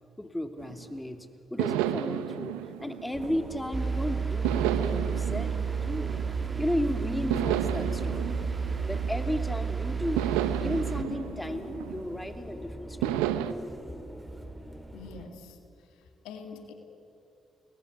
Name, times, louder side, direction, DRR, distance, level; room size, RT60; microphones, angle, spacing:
voice 1, 0.2-6.1 6.6-8.3 8.9-10.2 10.6-13.2 13.7-14.0, left 1 dB, 10° left, 7 dB, 2.9 m, -34 dB
sound 1, 0.6-1.0 1.6-3.8 4.4-6.7 7.3-9.6 10.2-12.4 13.0-13.5, right 11 dB, 85° right, 0.9 m, -32 dB
sound 2, 3.1-15.3, equal, 10° right, 3.7 m, -41 dB
sound 3, 3.7-11.0, right 6 dB, 40° right, 2.1 m, -31 dB
voice 2, 14.9-15.6 16.2-16.7, left 5 dB, 80° left, 5 dB, 2.3 m, -44 dB
29.5 x 21.0 x 8.3 m, 2.7 s
hypercardioid pair, 45°, 0 cm